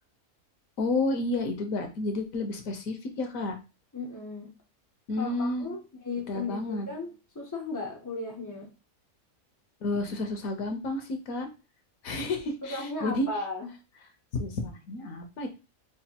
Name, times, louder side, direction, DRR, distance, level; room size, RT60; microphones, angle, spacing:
voice 1, 0.8-3.6 5.1-5.7 6.3-6.9 9.8-11.5 12.0-13.3 14.3-15.5, left 2 dB, 70° left, 5 dB, 1.2 m, -31 dB
voice 2, 3.9-4.5 5.2-8.7 12.6-13.7, left 3 dB, 30° left, 0 dB, 0.3 m, -36 dB
5.0 x 2.5 x 2.8 m, 0.29 s
omnidirectional pair, 1.5 m